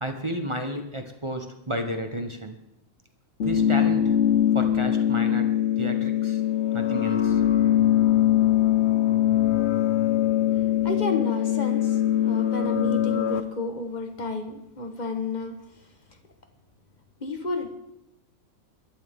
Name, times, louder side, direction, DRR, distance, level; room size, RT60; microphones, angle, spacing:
voice 1, 0.0-2.6 3.4-4.1 4.5-6.4 6.7-7.4, right 1 dB, 25° right, 5 dB, 0.7 m, -32 dB
sound 1, 3.4-13.4, left 11 dB, 85° left, 0.6 m, -22 dB
voice 2, 10.8-15.7 17.2-17.8, left 2 dB, 25° left, 6 dB, 1.1 m, -31 dB
22.5 x 12.0 x 3.7 m, 0.85 s
omnidirectional pair, 2.2 m